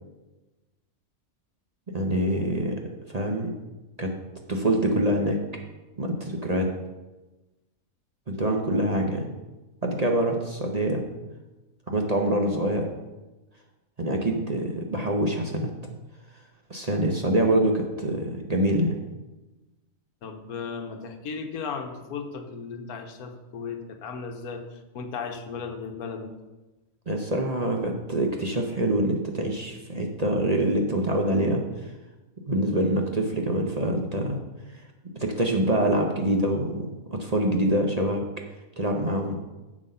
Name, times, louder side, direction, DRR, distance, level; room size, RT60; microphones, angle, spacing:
voice 1, 1.9-2.8 3.1-3.5 4.0-4.1 4.5-5.4 6.0-6.7 8.3-9.2 9.8-11.0 11.9-12.8 14.0-15.7 16.7-19.0 27.1-31.6 32.5-34.4 35.1-38.2 38.8-39.4, right 1 dB, 30° right, 2 dB, 0.9 m, -25 dB
voice 2, 20.2-26.3, left 5 dB, 85° left, 5 dB, 1.4 m, -36 dB
7.6 x 7.3 x 5.6 m, 1.1 s
omnidirectional pair, 1.5 m